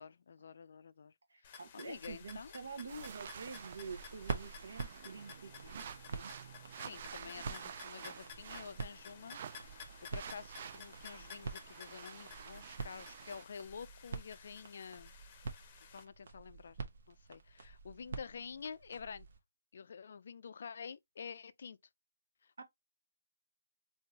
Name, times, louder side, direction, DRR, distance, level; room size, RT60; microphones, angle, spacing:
voice 1, 0.0-1.1 1.4-2.6 6.8-9.4 10.1-15.1 15.9-16.8 17.1-19.3 19.7-21.8 22.4-22.6, left 6 dB, 55° left, 0.4 m, -49 dB
voice 2, 1.3-6.3 22.6-22.7, right 4 dB, 75° right, 1.1 m, -47 dB
sound 1, 1.4-16.0, left 7 dB, 30° left, 0.7 m, -55 dB
sound 2, 1.9-19.4, right 4 dB, 55° right, 0.9 m, -48 dB
sound 3, 2.9-13.4, right 8 dB, 40° right, 0.3 m, -50 dB
3.7 x 2.8 x 2.7 m
hypercardioid pair, 160°, 0 cm